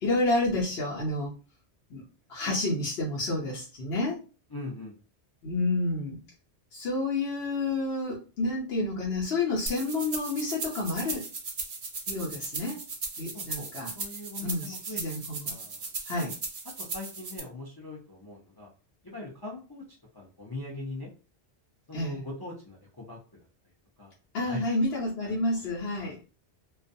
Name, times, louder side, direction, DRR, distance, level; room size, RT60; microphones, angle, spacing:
voice 1, 0.0-1.3 1.9-2.0 2.3-4.2 5.4-6.2 6.7-11.2 12.1-12.8 13.2-13.9 14.4-15.6 16.1-16.3 21.9-22.2 24.3-26.2, left 2 dB, 70° left, -5 dB, 0.9 m, -29 dB
voice 2, 4.5-4.9 13.3-13.7 13.9-15.0 15.5-16.3 16.8-18.7 19.0-19.8 20.1-21.1 21.9-23.2 24.0-24.2 24.4-24.8 25.2-25.7 26.0-26.2, left 2 dB, 30° left, -4 dB, 0.4 m, -41 dB
sound 1, 9.7-17.4, right 4 dB, 50° right, 0.4 m, -37 dB
2.3 x 2.2 x 2.5 m, 0.35 s
omnidirectional pair, 1.1 m